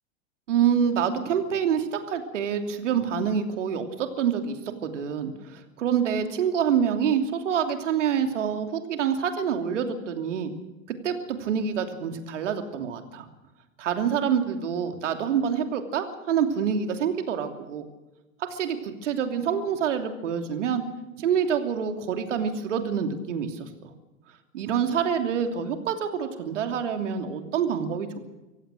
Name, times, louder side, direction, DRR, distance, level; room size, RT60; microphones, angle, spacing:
voice 1, 0.5-10.5 10.9-13.3 13.8-17.8 18.4-20.8 21.2-23.7 24.5-28.2, right 7 dB, 65° right, 6 dB, 3.0 m, -26 dB
25.0 x 16.5 x 6.5 m, 1.0 s
figure-of-eight pair, 95°, 40 cm